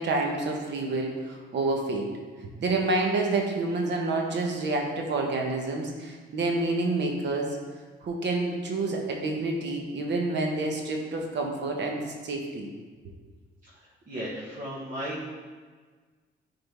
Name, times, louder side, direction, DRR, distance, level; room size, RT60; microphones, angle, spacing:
voice 1, 0.0-2.1 2.6-7.6 8.0-12.7, right 2 dB, 65° right, 1 dB, 1.2 m, -28 dB
voice 2, 13.6-15.3, equal, 40° right, -7 dB, 1.5 m, -36 dB
9.1 x 3.9 x 3.5 m, 1.5 s
cardioid pair, 90°, 20 cm